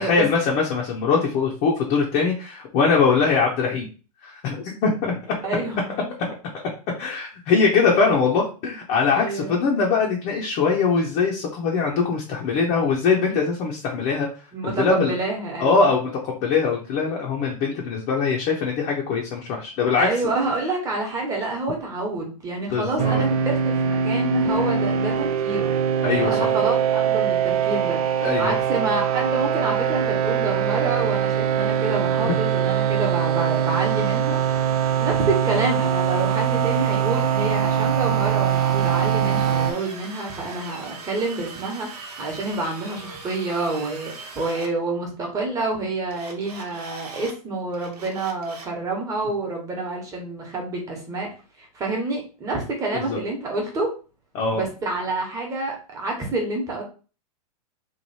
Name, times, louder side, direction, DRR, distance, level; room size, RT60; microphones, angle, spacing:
voice 1, 0.0-3.8 4.2-5.3 7.0-15.1 15.6-20.1 22.7-23.2 26.0-26.5 28.2-28.6 32.2-32.3 52.9-53.2 54.3-54.6, left 5 dB, 35° left, -1 dB, 0.8 m, -22 dB
voice 2, 5.4-5.9 6.2-6.3 9.1-9.6 14.5-15.9 20.0-25.7 26.2-34.6 35.0-51.3 51.6-53.9 54.5-56.8, right 2 dB, 15° right, 0 dB, 1.2 m, -28 dB
sound 1, 23.0-39.7, right 8 dB, 70° right, 0.5 m, -22 dB
Drill, 38.4-44.7 46.1-47.4 47.7-48.8, right 4 dB, 90° right, 1.2 m, -40 dB
3.2 x 2.6 x 4.0 m, 0.36 s
hypercardioid pair, 140°, 20 cm